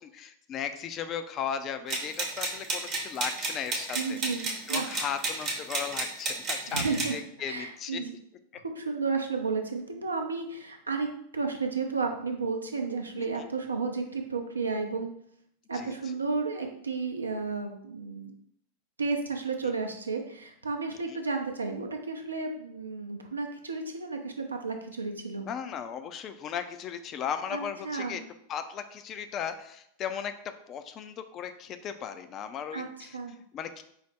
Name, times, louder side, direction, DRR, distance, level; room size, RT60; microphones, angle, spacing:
voice 1, 0.0-4.4 4.7-8.0 13.2-13.3 15.7-16.0 19.6-19.7 21.1-21.2 25.5-28.2 28.5-33.1 33.5-33.8, left 8 dB, 30° left, 9 dB, 0.3 m, -36 dB
sound 1, 1.9-7.1, right 3 dB, 35° right, 0.7 m, -32 dB
voice 2, 3.9-4.9 6.7-7.2 7.5-8.1 8.8-11.1 11.3-15.1 15.7-18.3 19.0-25.5 27.5-28.2 32.7-33.3, right 4 dB, 75° right, 4 dB, 0.5 m, -32 dB
4.5 x 2.0 x 3.5 m, 0.71 s
figure-of-eight pair, 90°, 0 cm